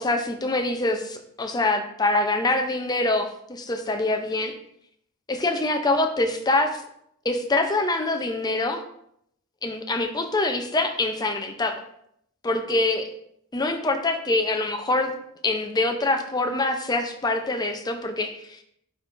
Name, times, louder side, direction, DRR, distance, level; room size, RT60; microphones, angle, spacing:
voice 1, 0.0-4.5 5.3-6.8 7.2-8.8 9.6-11.8 12.4-13.1 13.5-15.1 15.4-18.6, left 2 dB, 20° left, 6 dB, 0.5 m, -25 dB
10.5 x 3.7 x 2.5 m, 0.73 s
head